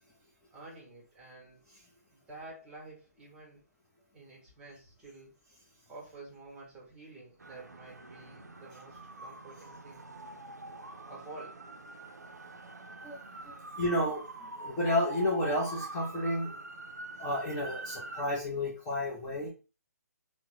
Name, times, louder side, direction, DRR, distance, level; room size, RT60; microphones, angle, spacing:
voice 1, 0.5-1.6 2.1-3.6 4.1-5.3 5.9-10.1 11.1-11.6, right 2 dB, 10° right, -4 dB, 1.0 m, -50 dB
sound 1, 7.4-18.2, right 2 dB, 75° right, 0.4 m, -45 dB
voice 2, 13.0-16.5 17.2-19.5, left 1 dB, 15° left, -6 dB, 0.6 m, -32 dB
3.3 x 2.1 x 3.1 m, 0.33 s
figure-of-eight pair, 135°, 9 cm